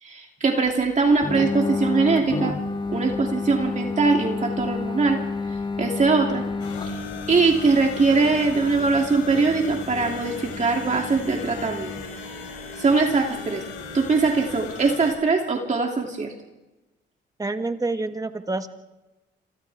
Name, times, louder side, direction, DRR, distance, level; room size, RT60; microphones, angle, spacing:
voice 1, 0.0-2.5 2.9-5.2 5.8-6.4 6.8-7.0 7.3-11.9 12.8-13.6 13.9-16.3, right 4 dB, 35° right, 1 dB, 2.8 m, -21 dB
sound 1, 1.2-12.0, left 3 dB, 25° left, 2.2 m, -30 dB
sound 2, 6.6-15.1, left 4 dB, 85° left, 4.6 m, -37 dB
voice 2, 17.4-18.7, right 2 dB, 15° right, 8 dB, 1.6 m, -27 dB
28.5 x 26.0 x 3.6 m, 1.1 s
cardioid pair, 90°, 20 cm